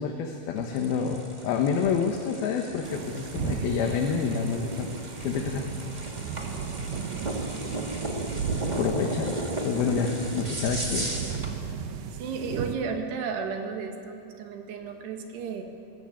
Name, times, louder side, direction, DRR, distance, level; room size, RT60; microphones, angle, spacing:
voice 1, 0.0-5.6 8.8-11.1, left 6 dB, 70° left, 3 dB, 3.1 m, -28 dB
sound 1, 0.6-11.5, right 1 dB, 20° right, 1.2 m, -35 dB
sound 2, 2.8-12.7, right 6 dB, 70° right, 1.8 m, -36 dB
voice 2, 12.2-15.6, right 5 dB, 85° right, 4 dB, 4.0 m, -33 dB
21.0 x 19.5 x 8.8 m, 2.9 s
omnidirectional pair, 4.6 m